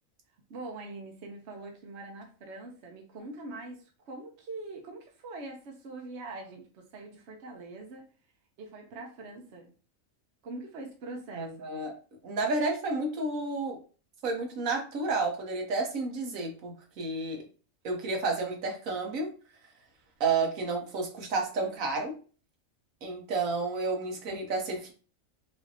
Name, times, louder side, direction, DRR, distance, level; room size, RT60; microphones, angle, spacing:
voice 1, 0.5-8.1 8.6-9.7 10.4-11.7, right 2 dB, 60° right, 2 dB, 1.0 m, -43 dB
voice 2, 11.3-11.9 12.2-13.8 14.2-17.4 17.8-19.3 20.2-22.1 23.0-24.9, right 3 dB, 80° right, 1 dB, 1.4 m, -31 dB
5.0 x 2.7 x 2.8 m, 0.37 s
omnidirectional pair, 1.4 m